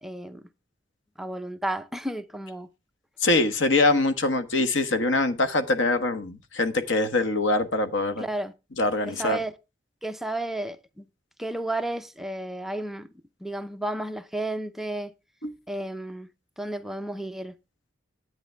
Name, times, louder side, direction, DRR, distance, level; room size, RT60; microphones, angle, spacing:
voice 1, 0.0-0.4 1.2-2.7 8.2-8.5 9.1-9.5 10.0-11.0 11.4-13.1 13.4-15.1 15.7-16.3 16.6-17.6, right 1 dB, ahead, 0.6 m, -32 dB
voice 2, 3.2-8.2 8.8-9.4 15.4-15.5, left 2 dB, 90° left, 1.3 m, -23 dB
10.5 x 8.9 x 3.3 m
head